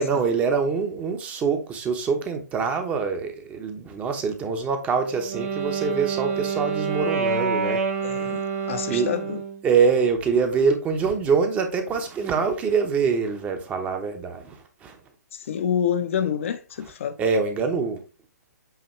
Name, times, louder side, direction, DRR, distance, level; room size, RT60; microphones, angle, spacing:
voice 1, 0.0-7.8 8.9-9.1 9.6-15.0 17.2-18.0, right 5 dB, 15° right, 0.9 m, -24 dB
Wind instrument woodwind instrument, 5.1-9.6, right 5 dB, 50° right, 1.3 m, -27 dB
voice 2, 8.0-8.4 8.7-9.4 15.3-17.2, left 8 dB, 45° left, 0.7 m, -27 dB
8.0 x 2.8 x 4.5 m
figure-of-eight pair, 135°, 9 cm